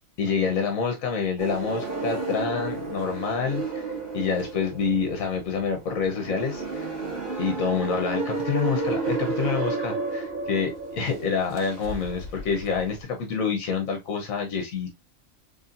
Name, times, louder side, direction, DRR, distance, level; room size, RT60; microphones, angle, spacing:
voice 1, 0.2-6.9 7.4-14.9, left 5 dB, 85° left, 1.3 m, -27 dB
sound 1, 1.4-13.0, right 3 dB, 40° right, 1.3 m, -32 dB
4.1 x 3.4 x 2.5 m
omnidirectional pair, 1.4 m